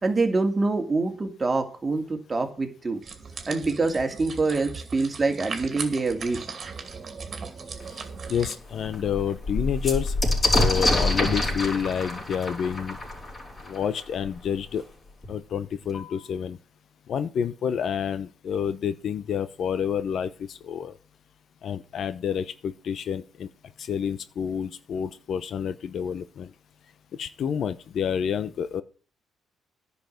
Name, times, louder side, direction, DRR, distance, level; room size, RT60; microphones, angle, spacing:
voice 1, 0.0-3.0 3.5-6.4, right 3 dB, 25° right, 4 dB, 2.4 m, -25 dB
sound 1, 3.0-8.6, right 5 dB, 45° right, 2.5 m, -38 dB
sound 2, 7.8-7.9 8.3-8.4 8.7-14.3 15.2-15.3 15.6-16.2, left 2 dB, 30° left, 4.5 m, -26 dB
voice 2, 8.3-10.1 10.5-13.0 13.7-14.8 15.3-16.6 17.1-20.9 21.6-23.5 23.8-26.5 27.2-28.8, left 8 dB, 65° left, 14 dB, 0.8 m, -29 dB
10.5 x 5.8 x 7.9 m, 0.39 s
cardioid pair, 90°, 0 cm